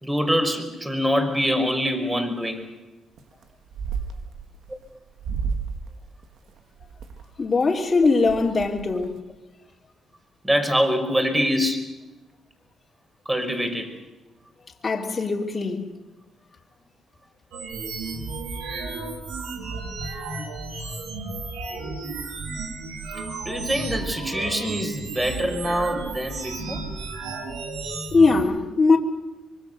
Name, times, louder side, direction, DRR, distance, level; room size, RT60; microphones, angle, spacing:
voice 1, 0.0-2.7 10.4-11.9 13.3-13.9 23.5-26.8, equal, 10° right, 5.2 m, -24 dB
sound 1, 3.2-3.4 3.7-4.8 5.2-5.8 6.2-7.2 7.7-7.8 8.0-9.2, right 5 dB, 70° right, 2.1 m, -32 dB
voice 2, 7.4-9.2 14.8-15.8 20.1-20.2 28.1-29.0, left 3 dB, 35° left, 3.1 m, -20 dB
sound 2, 17.5-28.4, right 3 dB, 90° right, 4.5 m, -33 dB
25.0 x 23.0 x 6.8 m
cardioid pair, 90°, 0 cm